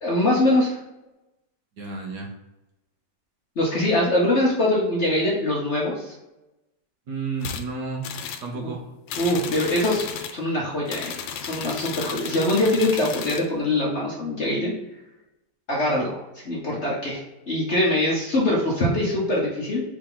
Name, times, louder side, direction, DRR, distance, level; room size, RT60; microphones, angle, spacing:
voice 1, 0.0-0.8 3.6-6.1 8.6-8.7 9.2-10.1 10.3-11.1 11.4-14.7 15.7-19.8, left 1 dB, 45° left, -4 dB, 1.0 m, -23 dB
voice 2, 1.8-2.3 7.1-8.1 8.4-8.9, right 4 dB, 65° right, 0 dB, 1.4 m, -31 dB
sound 1, 7.4-7.6 8.0-8.5 9.1-10.4 10.9-13.5, left 8 dB, 90° left, 1.4 m, -33 dB
4.8 x 2.8 x 3.8 m, 0.96 s
omnidirectional pair, 2.1 m